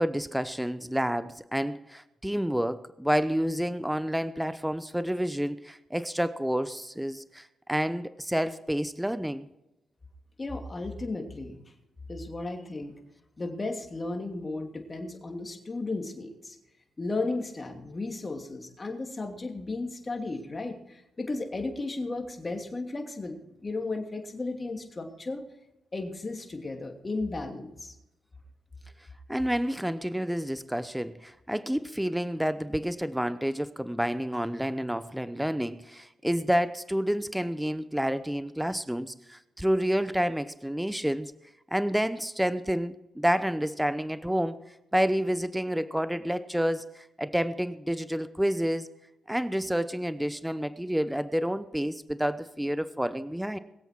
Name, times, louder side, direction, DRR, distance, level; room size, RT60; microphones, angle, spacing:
voice 1, 0.0-9.5 29.3-41.3 41.7-44.6 44.9-48.9 49.3-53.6, equal, 5° right, 14 dB, 0.7 m, -29 dB
voice 2, 10.4-11.6 12.1-13.0 13.4-16.6 17.0-25.4 25.9-27.9, left 2 dB, 30° left, 3 dB, 2.8 m, -34 dB
22.0 x 8.0 x 4.6 m, 0.90 s
supercardioid pair, 60°, 0 cm